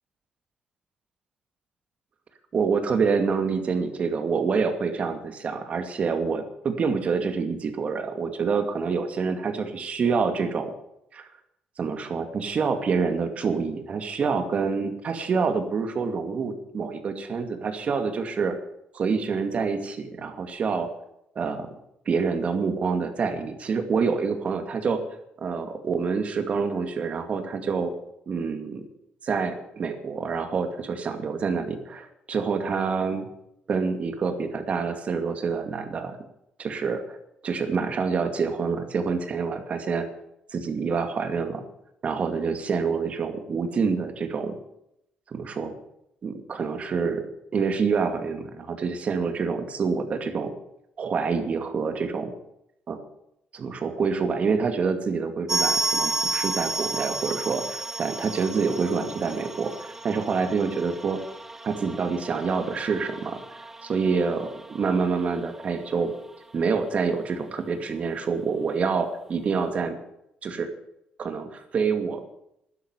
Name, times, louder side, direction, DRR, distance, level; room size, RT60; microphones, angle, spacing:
voice 1, 2.5-10.7 11.1-11.3 11.8-18.6 18.9-20.9 21.4-21.7 22.1-25.0 25.4-27.9 28.3-28.9 29.2-33.3 33.7-36.2 36.6-37.2 37.4-40.1 40.5-41.6 42.0-44.5 45.3-45.7 46.2-47.2 47.5-50.5 51.0-52.3 52.9-53.0 53.5-61.2 61.6-66.1 66.5-70.0 70.4-70.7 71.2-72.2, right 5 dB, 45° right, 7 dB, 2.3 m, -27 dB
sound 1, 55.5-66.0 66.3-66.4 66.6-66.7 67.4-67.5, right 2 dB, 15° right, 0.7 m, -32 dB
12.5 x 10.5 x 8.0 m, 0.79 s
cardioid pair, 115°, 3 cm